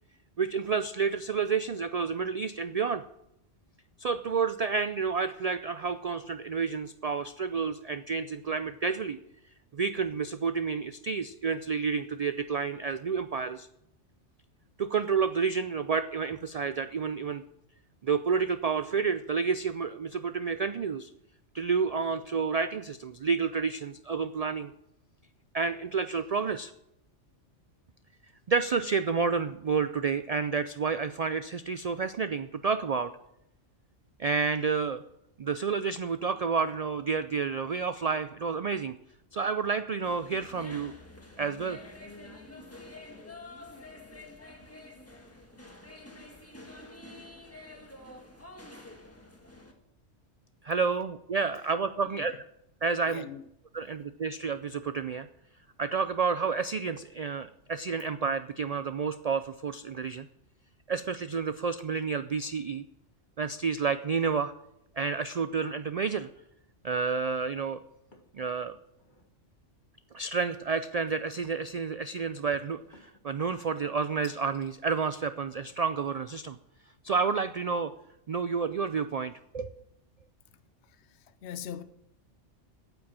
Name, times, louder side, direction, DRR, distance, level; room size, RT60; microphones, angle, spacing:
voice 1, 0.4-3.0 4.0-9.2 9.7-13.7 14.8-17.4 18.0-21.1 21.5-24.7 25.5-26.7 28.5-33.1 34.2-35.0 35.4-38.9 39.3-40.9 41.4-41.8 50.6-52.3 52.8-53.3 53.7-55.3 55.8-60.3 60.9-62.8 63.4-64.5 65.0-66.3 66.8-67.8 68.3-68.8 70.1-76.6 77.0-77.9 78.3-79.8, right 5 dB, 75° right, 0.3 m, -30 dB
sound 1, 40.0-49.7, left 2 dB, 10° left, 1.4 m, -48 dB
voice 2, 53.1-53.4 81.4-81.8, left 9 dB, 70° left, 0.9 m, -39 dB
sound 2, 68.1-68.4 68.9-69.3 71.1-71.6 72.9-73.3 74.2-74.7, left 3 dB, 40° left, 1.7 m, -57 dB
9.1 x 8.8 x 7.4 m
omnidirectional pair, 1.2 m